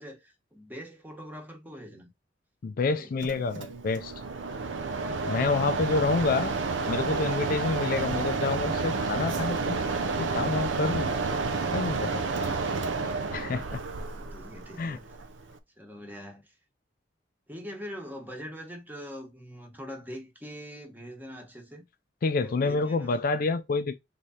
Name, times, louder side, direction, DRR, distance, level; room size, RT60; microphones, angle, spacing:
voice 1, 0.0-2.1 2.9-3.1 12.4-12.8 13.0-13.3 14.0-15.1 15.8-16.5 17.5-21.8 22.4-23.2, equal, 10° right, 1.1 m, -43 dB
voice 2, 2.6-4.1 5.3-6.5 6.9-9.8 10.2-11.4 11.7-12.4 13.3-13.8 14.8-15.0 22.2-24.0, left 3 dB, 50° left, 0.4 m, -28 dB
Mechanisms, 3.2-15.6, right 4 dB, 90° right, 0.5 m, -30 dB
3.6 x 3.2 x 4.2 m
head